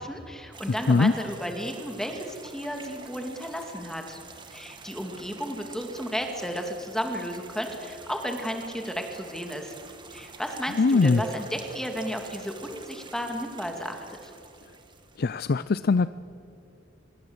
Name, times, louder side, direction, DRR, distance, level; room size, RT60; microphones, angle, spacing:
voice 1, 0.0-4.2 4.5-9.7 10.1-14.3, equal, 5° left, 4 dB, 2.3 m, -33 dB
sound 1, 0.5-15.3, right 4 dB, 25° right, 2.0 m, -47 dB
voice 2, 10.8-11.2 15.2-16.1, left 4 dB, 55° left, 15 dB, 0.5 m, -21 dB
27.0 x 21.5 x 8.0 m, 2.8 s
head